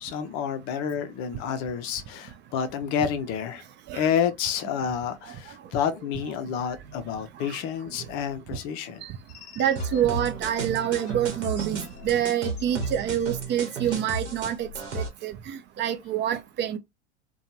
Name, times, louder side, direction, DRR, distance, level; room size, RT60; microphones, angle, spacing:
voice 1, 0.0-3.6 3.9-9.0 9.3-9.6 12.0-12.1, left 8 dB, 45° left, 0.6 m, -29 dB
voice 2, 9.6-14.7 14.9-16.8, right 10 dB, 30° right, 0.5 m, -27 dB
sound 1, 9.8-15.1, right 3 dB, 85° right, 1.0 m, -34 dB
2.6 x 2.3 x 2.8 m
hypercardioid pair, 90°, 35 cm